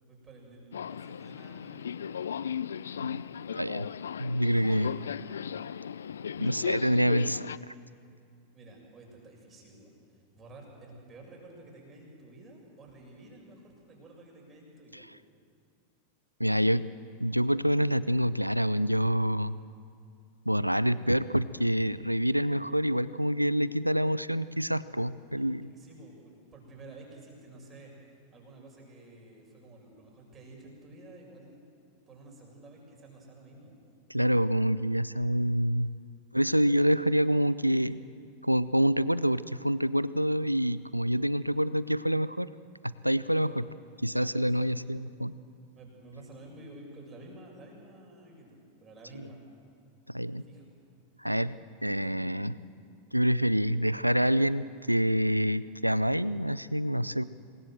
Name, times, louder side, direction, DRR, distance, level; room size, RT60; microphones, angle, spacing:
voice 1, 0.1-2.3 4.6-4.9 6.4-6.9 8.5-10.0 10.3-15.1 25.3-31.6 32.1-33.9 37.7-38.0 43.3-43.6 44.1-44.3 44.6-44.7 45.7-49.4 50.4-50.7 51.9-52.2, right 2 dB, 20° right, -1 dB, 7.2 m, -51 dB
Subway metro underground, 0.7-7.6, left 8 dB, 65° left, 0.5 m, -36 dB
voice 2, 3.5-3.9 4.2-4.9 6.4-7.5 16.4-16.9 17.2-19.6 20.5-25.7 34.1-35.9 36.3-37.9 38.4-42.5 42.8-43.6 44.0-45.3 50.1-50.4 51.2-51.6 51.8-52.5 53.1-57.2, equal, 90° right, 18 dB, 0.6 m, -27 dB
26.5 x 20.5 x 7.8 m, 2.4 s
figure-of-eight pair, 90°, 0 cm